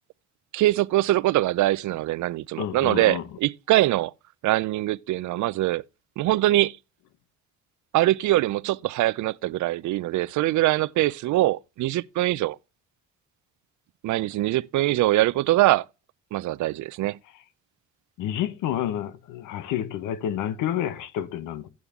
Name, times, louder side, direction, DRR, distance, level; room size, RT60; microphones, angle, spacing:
voice 1, 0.5-4.1 4.4-5.8 6.2-6.8 7.9-12.6 14.0-15.8 16.3-17.2, right 16 dB, 75° right, 0.5 m, -23 dB
voice 2, 2.6-3.2 18.2-21.7, left 10 dB, 90° left, 0.9 m, -29 dB
11.0 x 8.3 x 3.6 m
cardioid pair, 90°, 30 cm